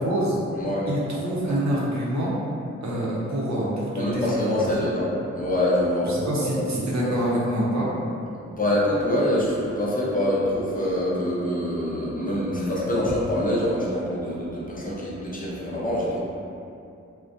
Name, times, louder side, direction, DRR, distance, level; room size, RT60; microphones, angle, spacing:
voice 1, 0.0-0.4 0.9-2.4 2.8-4.8 6.0-7.9, right 1 dB, 60° right, -6 dB, 0.7 m, -26 dB
voice 2, 0.5-0.9 4.0-6.5 8.5-16.2, left 1 dB, 25° left, -7 dB, 0.6 m, -25 dB
2.4 x 2.1 x 2.6 m, 2.7 s
cardioid pair, 45°, 31 cm